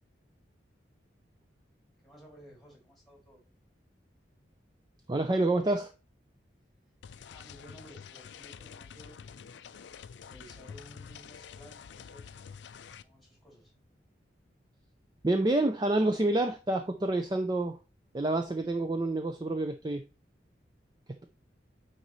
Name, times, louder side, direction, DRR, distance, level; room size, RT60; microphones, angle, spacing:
voice 1, 2.0-3.4 7.2-9.2 10.2-12.4 13.0-13.7, equal, ahead, 2.5 m, -55 dB
voice 2, 5.1-5.9 15.2-17.8 18.1-20.1, right 2 dB, 20° right, 0.4 m, -28 dB
sound 1, 7.0-13.0, left 7 dB, 70° left, 0.4 m, -48 dB
9.3 x 3.9 x 3.1 m
head